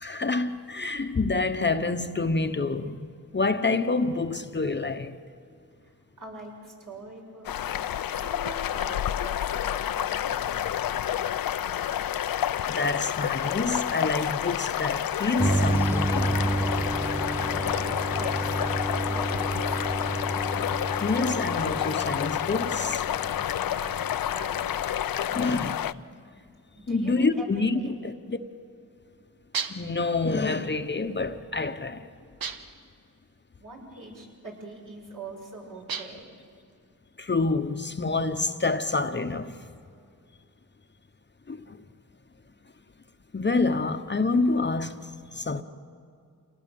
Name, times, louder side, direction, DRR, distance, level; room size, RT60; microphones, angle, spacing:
voice 1, 0.0-5.2 12.7-16.4 21.0-23.0 25.4-25.7 26.9-28.4 29.7-32.1 37.2-39.5 41.5-41.8 43.3-45.6, left 3 dB, 30° left, 1.0 m, -27 dB
voice 2, 5.8-7.8 8.1-10.6 17.0-17.2 17.4-19.9 23.6-25.4 26.8-27.9 33.6-36.3, right 2 dB, 60° right, 7.3 m, -44 dB
sound 1, 7.5-25.9, left 10 dB, 75° left, 0.6 m, -29 dB
sound 2, 15.4-24.1, right 2 dB, 5° right, 0.6 m, -30 dB
sound 3, 29.5-30.0 32.4-32.9 35.9-36.3, right 6 dB, 80° right, 1.4 m, -34 dB
28.0 x 19.0 x 7.8 m
cardioid pair, 70°, 35 cm